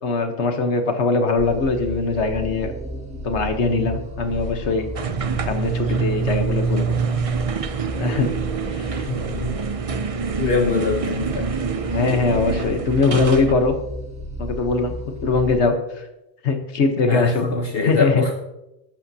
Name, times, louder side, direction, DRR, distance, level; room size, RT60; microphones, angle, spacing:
voice 1, 0.0-2.7 3.2-4.9 5.4-7.0 8.0-8.3 8.7-9.0 11.8-13.7 14.4-14.9 15.2-16.0 16.4-17.4 17.8-18.2, left 3 dB, 85° left, 6 dB, 1.5 m, -21 dB
sound 1, 1.4-15.6, right 1 dB, 5° right, 1.9 m, -33 dB
sound 2, 4.9-13.5, right 5 dB, 40° right, 0.6 m, -26 dB
voice 2, 9.0-9.5 10.4-11.5 17.1-18.4, left 3 dB, 60° left, 2 dB, 1.2 m, -23 dB
13.5 x 12.0 x 2.8 m, 0.89 s
omnidirectional pair, 1.1 m